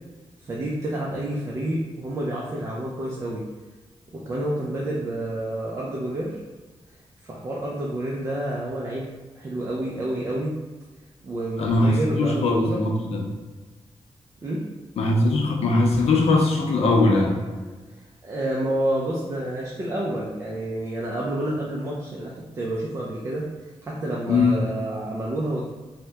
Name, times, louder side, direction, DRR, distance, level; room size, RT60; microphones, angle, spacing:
voice 1, 0.5-3.4 4.1-6.4 7.3-9.1 9.3-10.5 11.2-12.8 14.4-14.6 18.2-25.6, right 1 dB, 30° right, -4 dB, 0.4 m, -29 dB
voice 2, 11.6-13.3 15.0-17.4 24.3-24.6, left 2 dB, 90° left, 0 dB, 0.5 m, -20 dB
2.8 x 2.1 x 3.4 m, 1.3 s
wide cardioid pair, 165°, 10 cm